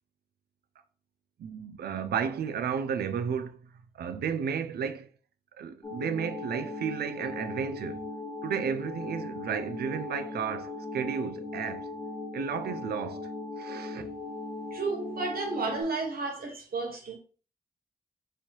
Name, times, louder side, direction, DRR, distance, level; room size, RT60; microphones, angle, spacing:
voice 1, 1.4-5.1 5.6-8.0 8.4-11.9 12.3-13.3 13.6-14.1, right 7 dB, 85° right, 0.4 m, -33 dB
sound 1, 5.8-15.8, left 2 dB, 30° left, 1.4 m, -38 dB
voice 2, 14.7-17.2, right 3 dB, 70° right, 1.0 m, -32 dB
3.2 x 2.8 x 4.4 m
cardioid pair, 50°, 16 cm